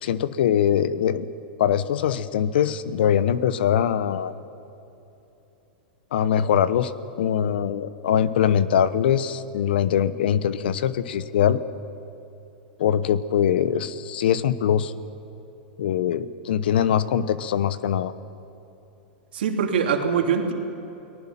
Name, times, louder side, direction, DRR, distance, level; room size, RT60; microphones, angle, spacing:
voice 1, 0.0-1.3 1.6-4.3 6.1-6.9 7.2-11.6 12.8-14.9 15.8-18.1, left 9 dB, 70° left, 15 dB, 1.0 m, -22 dB
voice 2, 19.3-20.5, right 6 dB, 80° right, 3 dB, 2.8 m, -23 dB
29.5 x 19.0 x 5.8 m, 3.0 s
hypercardioid pair, 115°, 6 cm